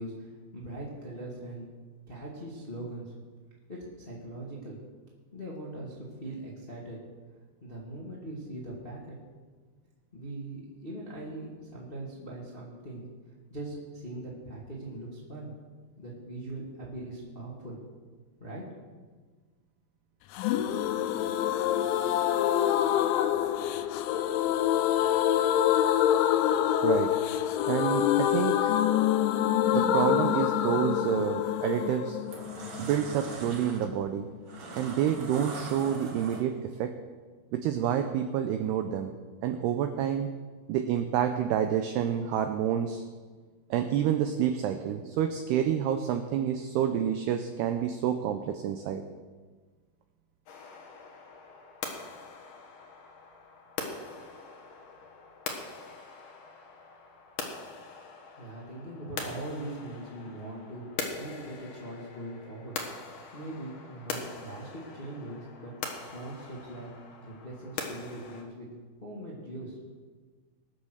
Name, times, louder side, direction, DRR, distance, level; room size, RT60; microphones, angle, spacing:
voice 1, 0.0-1.7 2.1-3.1 3.7-4.8 5.3-7.0 7.6-9.2 10.1-13.1 13.5-15.5 16.0-17.8 18.4-18.9 58.4-60.9 61.2-62.7 63.3-65.7 66.0-66.9 67.2-68.7 69.0-69.8, right 1 dB, 25° left, -4 dB, 1.2 m, -41 dB
sound 1, 20.4-34.0 34.2-34.3 34.6-34.7, left 11 dB, 80° left, 3.0 m, -26 dB
voice 2, 26.8-27.2 27.7-28.8 29.7-32.2 32.8-34.3 34.7-37.0 37.5-39.1 39.4-40.3 40.7-43.0 43.7-49.1, right 9 dB, 85° right, 7 dB, 2.3 m, -28 dB
sound 2, 31.3-31.6 32.1-36.7, right 2 dB, 55° right, 1.4 m, -42 dB
sound 3, 50.5-68.4, left 4 dB, 60° left, 2.2 m, -42 dB
21.0 x 7.6 x 6.4 m, 1.4 s
omnidirectional pair, 5.5 m